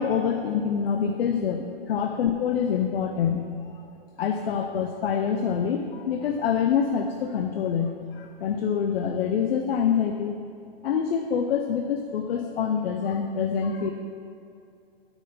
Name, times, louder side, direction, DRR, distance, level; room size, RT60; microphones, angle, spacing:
voice 1, 0.0-3.5 4.2-10.4 10.8-13.9, left 7 dB, 65° left, 5 dB, 0.6 m, -26 dB
9.0 x 4.2 x 5.4 m, 2.5 s
hypercardioid pair, 135°, 31 cm